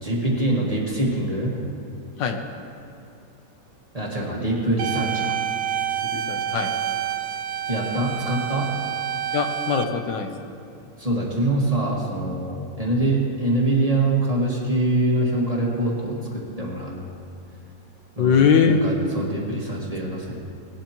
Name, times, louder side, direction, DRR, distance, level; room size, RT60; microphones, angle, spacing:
voice 1, 0.0-1.6 3.9-5.4 7.7-8.7 11.0-17.0 18.2-20.4, right 1 dB, 20° right, -4 dB, 1.7 m, -24 dB
sound 1, 4.8-9.8, right 10 dB, 70° right, 1.1 m, -28 dB
voice 2, 6.1-6.7 9.3-10.3 18.2-18.8, left 6 dB, 75° left, 5 dB, 1.5 m, -21 dB
19.0 x 11.5 x 3.0 m, 2.5 s
omnidirectional pair, 2.0 m